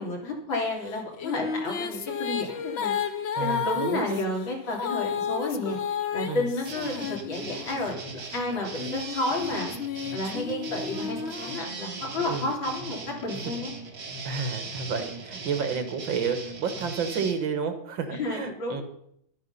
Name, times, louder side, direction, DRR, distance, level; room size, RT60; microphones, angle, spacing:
voice 1, 0.0-2.9 3.4-6.9 7.3-9.7 10.1-13.7 18.1-18.8, left 2 dB, 85° left, 0 dB, 3.7 m, -31 dB
sound 1, 0.9-7.9 8.5-12.2, left 7 dB, 55° left, 0.7 m, -33 dB
voice 2, 3.4-4.3 6.3-6.5 12.2-12.5 13.3-13.5 14.2-18.8, right 6 dB, 80° right, 7 dB, 2.2 m, -31 dB
sound 2, 6.6-17.3, right 3 dB, 60° right, 2.3 m, -39 dB
12.0 x 9.5 x 5.5 m, 0.72 s
omnidirectional pair, 2.1 m